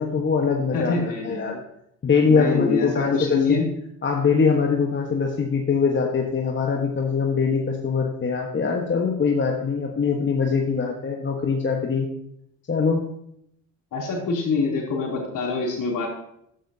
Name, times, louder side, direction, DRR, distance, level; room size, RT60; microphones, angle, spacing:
voice 1, 0.0-1.6 2.0-3.6 4.0-12.1 12.7-13.0, left 5 dB, 30° left, 1 dB, 1.5 m, -22 dB
voice 2, 0.7-1.5 2.3-3.6 13.9-16.1, left 4 dB, 55° left, -1 dB, 3.4 m, -25 dB
13.5 x 9.1 x 2.9 m, 0.76 s
hypercardioid pair, 55°, 37 cm